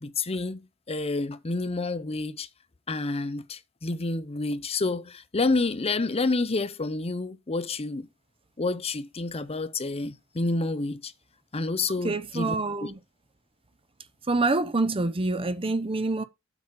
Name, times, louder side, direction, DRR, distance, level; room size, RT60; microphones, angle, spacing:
voice 1, 0.0-2.5 2.9-8.1 8.6-11.1 11.5-12.5 12.8-12.9, left 3 dB, 30° left, 0.7 m, -29 dB
voice 2, 12.0-13.0 14.3-16.2, right 2 dB, 25° right, 0.8 m, -26 dB
8.3 x 5.1 x 6.6 m
head